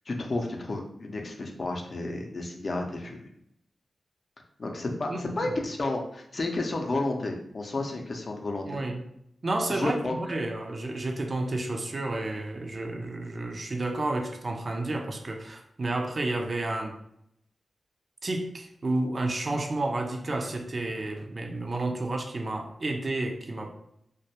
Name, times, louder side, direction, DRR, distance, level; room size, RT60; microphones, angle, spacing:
voice 1, 0.1-3.2 4.6-8.8 9.7-10.2, left 2 dB, 55° left, 2 dB, 0.5 m, -31 dB
voice 2, 5.1-5.5 8.7-9.0 9.4-17.0 18.2-23.7, right 2 dB, 50° right, 3 dB, 0.4 m, -31 dB
2.2 x 2.1 x 2.7 m, 0.75 s
cardioid pair, 50°, 0 cm